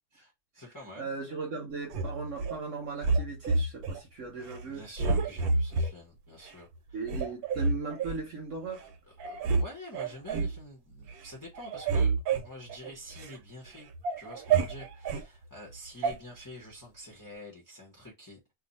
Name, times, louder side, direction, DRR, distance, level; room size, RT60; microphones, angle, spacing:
voice 1, 0.2-1.1 4.6-7.0 9.1-12.2 12.4-13.9 14.2-18.4, left 1 dB, 15° left, 0.6 m, -47 dB
voice 2, 1.0-4.9 6.9-8.9, right 4 dB, 60° right, 1.0 m, -38 dB
sound 1, 1.9-2.6 3.0-4.0 4.4-4.6 5.0-5.9 6.5-6.6 7.0-8.2 8.8-8.9 9.2-9.6 9.9-10.6 11.0-11.3 11.5-13.3 13.7-15.2 16.0-16.2, right 4 dB, 75° right, 1.1 m, -29 dB
2.6 x 2.5 x 4.0 m
omnidirectional pair, 1.6 m